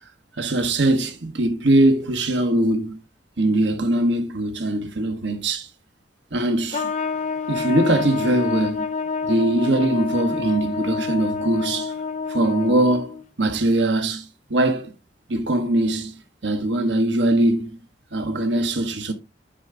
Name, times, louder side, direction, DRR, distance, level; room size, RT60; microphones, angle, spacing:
voice 1, 0.4-3.0 3.4-5.7 6.3-6.9 7.5-8.9 9.2-11.9 12.3-14.9 15.3-17.8 18.1-19.1, right 1 dB, 85° right, 1.3 m, -21 dB
Trumpet, 6.7-13.2, left 5 dB, 40° left, 0.6 m, -28 dB
10.0 x 5.7 x 3.8 m
head